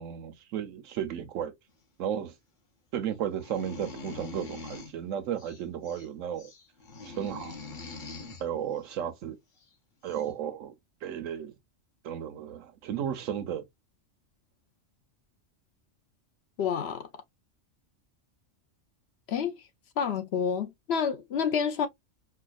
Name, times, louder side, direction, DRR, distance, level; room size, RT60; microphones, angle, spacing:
voice 1, 0.0-1.5 2.0-2.3 2.9-6.5 7.0-7.6 8.4-9.4 10.0-10.7 11.0-11.5 12.0-13.6, right 9 dB, 85° right, 1.1 m, -34 dB
sound 1, 3.3-5.0 5.4-6.1 6.4-8.4 9.6-9.7 10.0-10.3, left 3 dB, 45° left, 1.1 m, -43 dB
voice 2, 16.6-17.1 19.3-19.5 20.0-21.9, left 7 dB, 65° left, 0.9 m, -28 dB
4.8 x 2.3 x 2.4 m
omnidirectional pair, 1.3 m